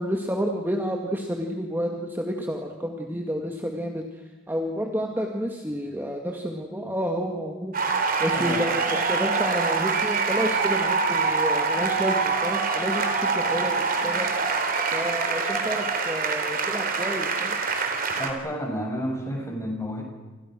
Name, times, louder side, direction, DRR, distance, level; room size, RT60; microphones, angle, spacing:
voice 1, 0.0-14.3 14.9-17.6, equal, 10° right, 2 dB, 2.1 m, -30 dB
sound 1, 7.7-18.3, right 4 dB, 40° right, 3.7 m, -25 dB
voice 2, 18.2-20.0, equal, 15° left, 1 dB, 7.0 m, -30 dB
30.0 x 27.0 x 6.3 m, 1.2 s
head